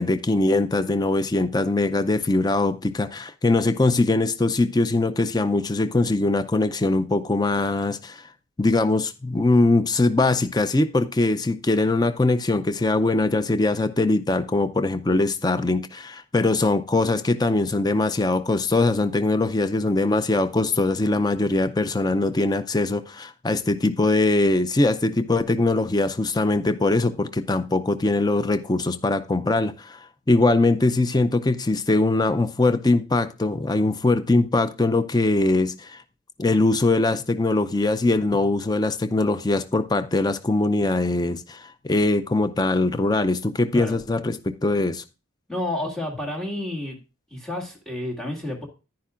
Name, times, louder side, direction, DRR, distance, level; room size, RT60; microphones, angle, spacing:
voice 1, 0.0-8.3 8.6-36.0 36.4-45.0, left 2 dB, 20° left, 12 dB, 0.4 m, -22 dB
voice 2, 45.5-47.0 47.3-48.7, left 1 dB, 5° left, -1 dB, 1.9 m, -30 dB
10.5 x 10.0 x 2.5 m, 0.29 s
head